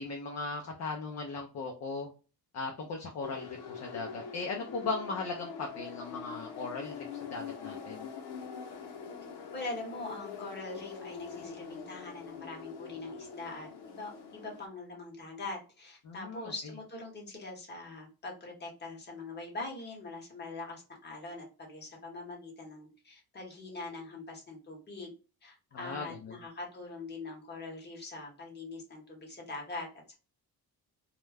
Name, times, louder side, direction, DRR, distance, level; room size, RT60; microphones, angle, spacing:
voice 1, 0.0-2.1 2.5-8.1 16.1-16.5 25.7-26.4, left 3 dB, 45° left, 2 dB, 0.5 m, -38 dB
sound 1, 3.2-14.7, left 6 dB, 90° left, 0.7 m, -44 dB
voice 2, 9.5-25.1 25.4-30.1, left 2 dB, 25° left, -1 dB, 1.0 m, -43 dB
2.3 x 2.1 x 3.2 m, 0.34 s
cardioid pair, 140°, 38 cm